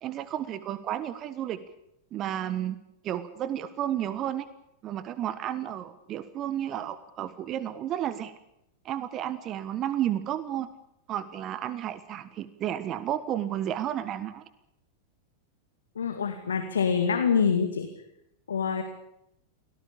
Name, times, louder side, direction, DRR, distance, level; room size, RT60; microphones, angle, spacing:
voice 1, 0.0-1.6 2.1-2.8 3.0-4.5 4.8-8.3 8.8-10.7 11.1-14.4, right 11 dB, 35° right, 15 dB, 1.4 m, -32 dB
voice 2, 16.0-17.9 18.5-18.8, left 6 dB, 70° left, 7 dB, 2.3 m, -25 dB
25.0 x 18.0 x 8.7 m, 0.80 s
figure-of-eight pair, 90°, 0 cm